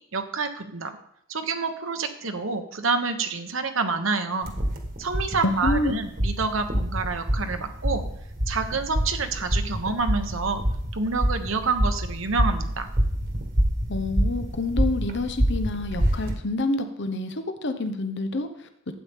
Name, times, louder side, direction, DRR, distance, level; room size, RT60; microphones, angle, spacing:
voice 1, 0.1-0.9 1.3-4.5 5.0-8.0 8.5-10.6 10.9-12.9, right 4 dB, 65° right, 7 dB, 1.1 m, -28 dB
sound 1, 4.4-16.3, equal, 45° right, 1.5 m, -26 dB
voice 2, 5.4-6.0 13.9-18.9, left 2 dB, 55° left, 7 dB, 1.0 m, -28 dB
12.5 x 8.4 x 3.7 m, 0.74 s
head